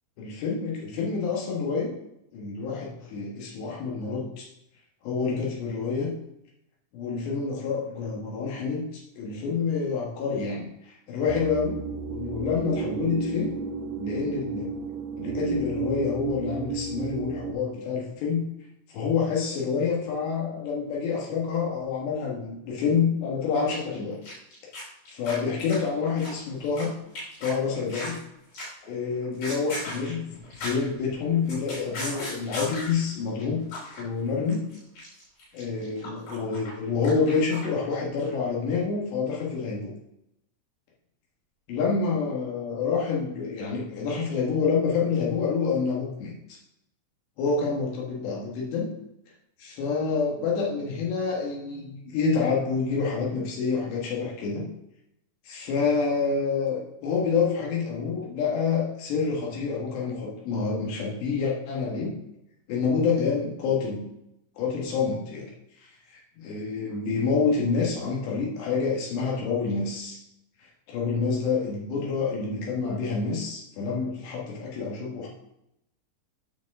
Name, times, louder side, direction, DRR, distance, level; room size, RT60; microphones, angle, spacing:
voice 1, 0.2-1.9 2.3-4.5 5.0-6.1 6.9-13.5 14.0-14.7 15.2-18.4 18.9-24.2 24.8-26.9 27.4-28.2 28.9-30.2 30.5-33.6 34.0-34.7 35.5-39.9 41.7-46.3 47.4-48.9 49.6-54.7 55.5-62.1 62.7-64.1 64.6-65.5 66.1-70.2 70.9-75.3, left 5 dB, 85° left, -3 dB, 3.7 m, -27 dB
sound 1, 11.3-17.5, right 4 dB, 85° right, 2.6 m, -32 dB
sound 2, 23.7-24.0 24.2-26.9 27.2-28.2 28.6-28.9 29.2-30.9 31.2-33.0 33.4-33.5 33.7-34.0 34.3-37.9 38.2-38.3, left 1 dB, 60° left, 4.8 m, -37 dB
8.4 x 6.4 x 3.7 m, 0.83 s
omnidirectional pair, 4.8 m